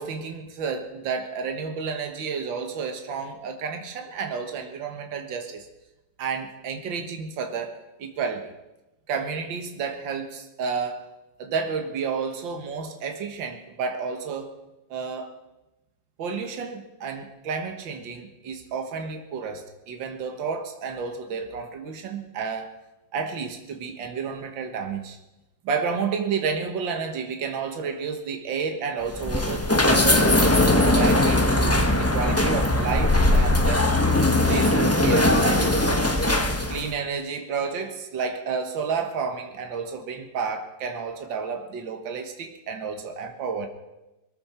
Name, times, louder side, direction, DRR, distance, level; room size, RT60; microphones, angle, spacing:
voice 1, 0.0-5.7 6.2-8.5 9.1-11.1 11.4-14.5 14.9-15.3 16.2-22.8 23.1-25.2 25.6-31.8 32.1-33.9 34.5-36.1 36.7-43.7, right 5 dB, 70° right, 5 dB, 2.1 m, -31 dB
sound 1, 29.1-36.9, left 1 dB, 10° left, 0.7 m, -20 dB
22.0 x 14.0 x 4.4 m, 0.99 s
omnidirectional pair, 2.2 m